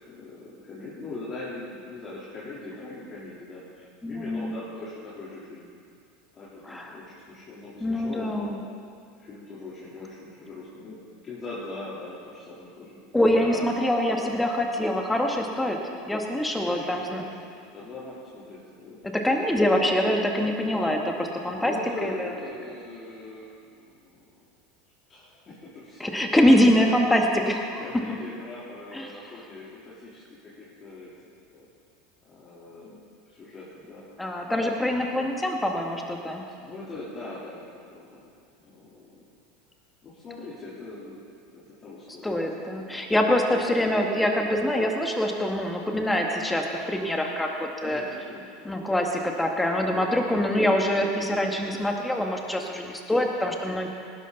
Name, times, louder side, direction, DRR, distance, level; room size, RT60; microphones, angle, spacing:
voice 1, 0.0-5.7 6.3-8.6 9.2-13.0 13.3-13.7 16.6-19.3 21.4-24.3 25.1-26.1 27.8-30.2 30.6-31.1 31.5-31.7 32.2-33.0 33.3-34.1 36.6-38.3 38.6-39.3 40.0-41.2 41.5-42.4 42.6-43.1 43.5-43.6 47.8-48.8, left 2 dB, 30° left, -9 dB, 3.6 m, -41 dB
voice 2, 4.0-4.5 6.7-7.0 7.8-8.6 13.1-17.2 19.1-21.7 22.0-22.3 26.0-27.8 28.9-29.1 34.2-36.4 42.2-48.0 48.7-53.9, left 1 dB, 10° left, 2 dB, 2.1 m, -24 dB
18.5 x 11.5 x 4.1 m, 2.3 s
hypercardioid pair, 80°, 0 cm